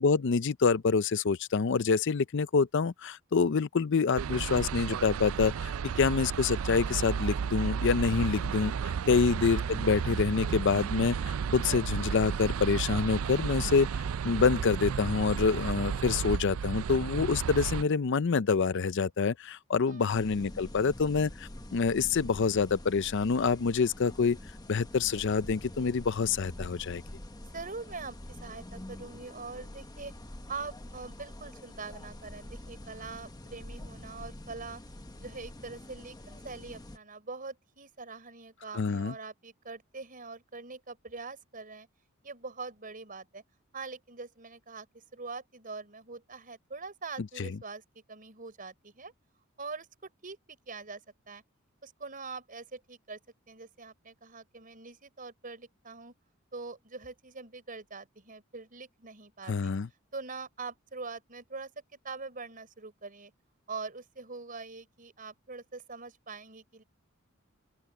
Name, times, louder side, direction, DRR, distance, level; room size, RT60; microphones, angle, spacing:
voice 1, 0.0-8.7 9.1-13.9 14.2-24.4 24.7-27.0 38.7-39.1 47.4-47.5 59.5-59.9, left 5 dB, 60° left, 0.5 m, -27 dB
sound 1, 4.2-17.8, right 6 dB, 85° right, 0.4 m, -33 dB
voice 2, 19.9-20.4 27.4-30.1 30.5-34.8 35.2-41.9 42.2-43.4 43.7-47.8 48.1-49.1 49.6-51.0 51.3-51.4 51.8-53.2 53.5-56.1 56.5-59.7 60.1-63.3 63.7-66.8, right 4 dB, 40° right, 5.2 m, -43 dB
sound 2, 20.1-37.0, left 1 dB, 20° left, 1.1 m, -46 dB
open air
head